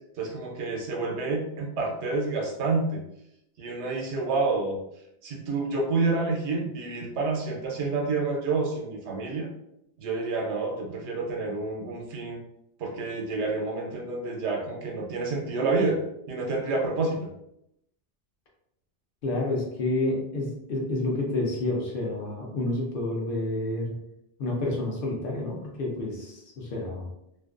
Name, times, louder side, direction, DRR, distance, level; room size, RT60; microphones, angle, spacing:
voice 1, 0.2-3.0 3.6-4.8 5.2-9.5 10.0-12.4 12.8-16.0 16.3-17.3, right 3 dB, 80° right, 0 dB, 0.9 m, -28 dB
voice 2, 19.2-23.9 24.4-27.1, left 2 dB, 60° left, -1 dB, 0.7 m, -29 dB
2.4 x 2.2 x 2.3 m, 0.80 s
omnidirectional pair, 1.1 m